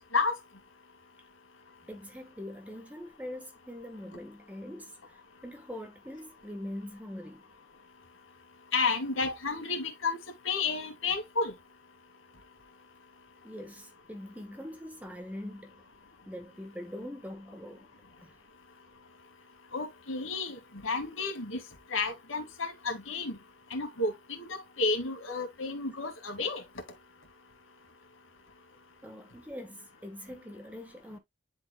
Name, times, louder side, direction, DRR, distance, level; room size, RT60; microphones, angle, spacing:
voice 1, 1.8-7.5 13.4-15.8 16.2-17.9 18.2-18.3 29.0-31.2, left 1 dB, 10° right, 1.4 m, -43 dB
voice 2, 8.7-10.2 10.4-11.5 19.7-21.6 21.9-23.4 23.7-26.6, left 3 dB, 75° left, 2.2 m, -31 dB
10.0 x 4.4 x 2.3 m
head